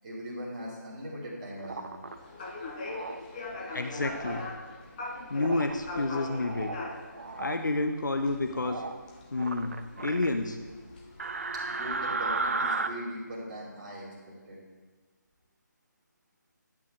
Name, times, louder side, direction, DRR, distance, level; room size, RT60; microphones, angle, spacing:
voice 1, 0.0-1.9 11.7-14.1 14.5-14.6, equal, 25° right, -6 dB, 2.5 m, -39 dB
sound 1, 1.6-2.1 2.9-3.2 3.9-4.5 5.3-5.8 6.2-6.8 7.1-7.6 8.6-9.0 9.4-10.3 11.2-12.9, right 3 dB, 45° right, 0.5 m, -34 dB
sound 2, 2.1-12.5, left 2 dB, 25° left, 1.2 m, -42 dB
voice 2, 3.7-4.5 5.3-6.7 7.4-8.8 9.3-10.6, left 2 dB, 70° left, 6 dB, 0.6 m, -30 dB
11.5 x 8.4 x 2.7 m, 1.4 s
figure-of-eight pair, 150°, 10 cm